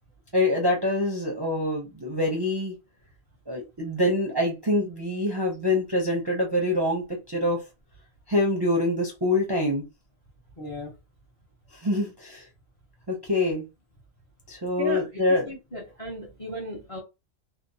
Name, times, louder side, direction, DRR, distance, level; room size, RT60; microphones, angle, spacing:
voice 1, 0.3-2.7 3.5-7.6 8.3-9.9 11.7-12.5 13.1-13.7 14.5-15.5, left 1 dB, 30° right, 0.4 m, -25 dB
voice 2, 10.6-10.9 14.8-17.0, equal, 35° left, 0.6 m, -35 dB
2.8 x 2.0 x 2.6 m
omnidirectional pair, 1.3 m